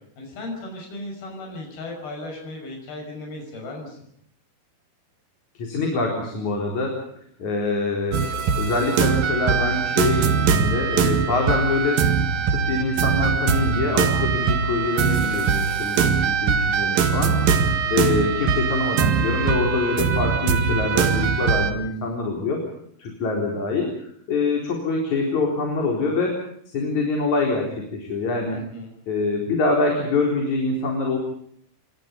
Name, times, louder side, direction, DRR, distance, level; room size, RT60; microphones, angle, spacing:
voice 1, 0.2-4.0 28.5-28.9, left 2 dB, 90° left, 2 dB, 7.6 m, -36 dB
voice 2, 5.6-7.0 7.4-8.2 8.6-12.1 12.5-17.4 17.9-22.6 23.0-26.4 26.7-28.6 29.1-31.2, left 3 dB, 50° left, 1 dB, 5.4 m, -25 dB
sound 1, 8.1-21.7, right 6 dB, 75° right, 3.6 m, -22 dB
28.5 x 24.0 x 5.3 m, 0.66 s
omnidirectional pair, 4.2 m